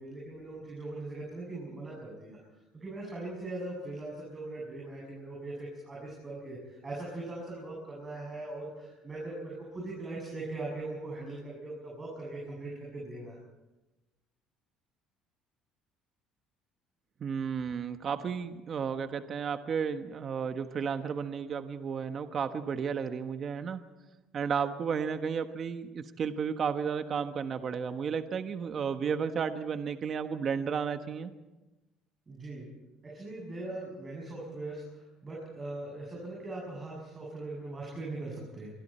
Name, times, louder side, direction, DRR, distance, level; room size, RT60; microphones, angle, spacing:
voice 1, 0.0-13.4 32.3-32.7 33.0-38.7, right 2 dB, 25° right, -4 dB, 7.8 m, -40 dB
voice 2, 17.2-23.8 24.3-31.3, right 6 dB, 40° right, 8 dB, 1.3 m, -33 dB
26.0 x 24.0 x 4.4 m, 1.1 s
cardioid pair, 130°, 0 cm